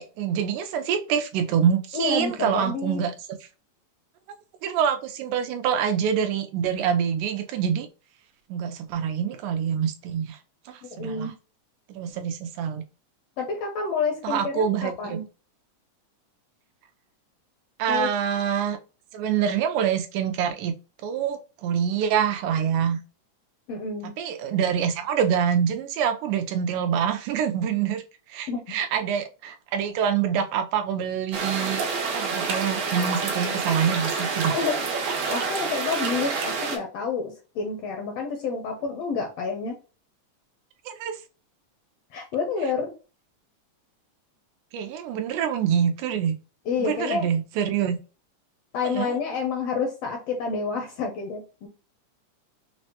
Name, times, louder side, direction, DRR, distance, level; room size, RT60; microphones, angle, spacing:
voice 1, 0.0-3.1 4.6-7.9 8.5-10.4 10.7-11.3 11.9-12.8 14.2-15.2 17.8-18.8 19.1-20.7 21.0-23.0 24.2-28.0 28.3-31.8 32.1-34.6 40.9-41.2 44.7-46.4 46.8-48.0 48.9-49.2, right 8 dB, 90° right, 2.2 m, -26 dB
voice 2, 1.9-3.0 10.9-11.3 13.4-15.2 17.9-18.1 23.7-24.1 28.5-28.8 34.5-34.8 35.3-39.7 42.1-42.9 46.7-47.3 48.7-51.7, left 5 dB, 75° left, 1.5 m, -29 dB
sound 1, 31.3-36.8, right 4 dB, 70° right, 2.2 m, -28 dB
5.9 x 2.1 x 2.8 m
omnidirectional pair, 3.5 m